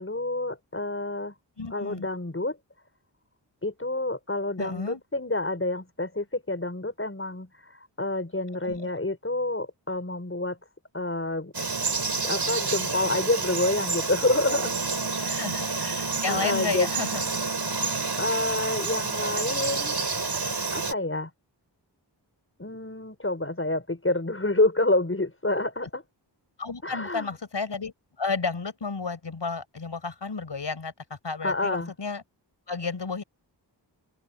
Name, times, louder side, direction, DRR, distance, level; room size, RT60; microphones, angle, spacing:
voice 1, 0.0-1.3 1.7-2.6 3.6-10.6 10.9-11.5 12.2-14.8 15.0-15.4 16.3-16.9 18.2-20.0 20.7-21.3 22.6-26.0 26.8-27.3 31.4-31.9, left 2 dB, 30° left, 6.6 m, -28 dB
voice 2, 1.6-2.1 4.6-5.0 8.6-9.0 15.2-17.4 26.6-32.2 32.7-33.2, left 4 dB, 75° left, 7.0 m, -32 dB
Frog, 11.5-20.9, right 4 dB, 60° right, 6.3 m, -29 dB
open air
wide cardioid pair, 65°, 43 cm